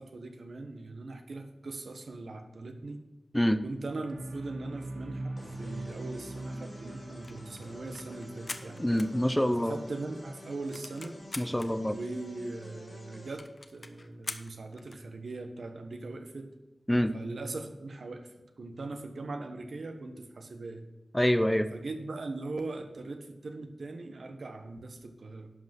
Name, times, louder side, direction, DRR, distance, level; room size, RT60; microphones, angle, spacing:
voice 1, 0.0-3.0 3.6-8.9 9.6-11.2 11.9-16.5 17.1-18.3 18.6-20.8 21.7-25.5, right 3 dB, 80° right, 6 dB, 1.2 m, -40 dB
sound 1, 4.0-12.3, right 2 dB, 65° right, 2.4 m, -44 dB
sound 2, 5.4-13.4, left 2 dB, 60° left, 3.8 m, -50 dB
sound 3, 7.1-9.8 10.1-10.2 10.4-11.7 12.3-12.4 12.6-12.7 13.0-13.1 13.4-15.1, left 2 dB, 40° left, 0.8 m, -44 dB
voice 2, 8.8-9.8 11.4-12.0 16.9-17.2 21.1-21.7, equal, 10° left, 11 dB, 0.6 m, -26 dB
11.0 x 5.5 x 6.0 m, 1.1 s
wide cardioid pair, 80°, 0 cm